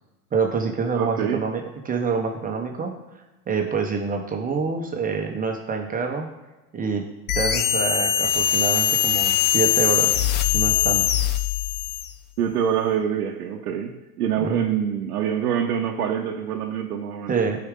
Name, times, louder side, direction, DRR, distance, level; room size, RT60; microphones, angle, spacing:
voice 1, 0.3-2.9 3.5-6.3 6.7-7.0 7.3-10.1 10.5-11.1 14.4-14.6 17.3-17.6, right 5 dB, 20° right, 3 dB, 0.9 m, -26 dB
voice 2, 1.0-1.4 12.4-17.4, right 8 dB, 85° right, 1 dB, 0.8 m, -25 dB
sound 1, 7.3-12.2, left 10 dB, 25° left, 0.4 m, -21 dB
11.0 x 4.8 x 3.7 m, 1.1 s
supercardioid pair, 115°, 44 cm